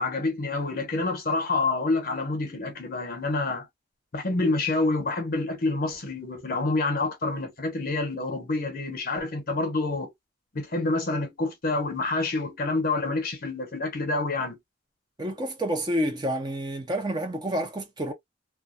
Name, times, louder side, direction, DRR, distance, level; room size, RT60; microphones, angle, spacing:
voice 1, 0.0-3.7 4.1-10.1 10.5-14.6, left 2 dB, 55° left, 0.9 m, -27 dB
voice 2, 15.2-18.1, equal, 25° right, 0.7 m, -29 dB
2.3 x 2.3 x 2.6 m
head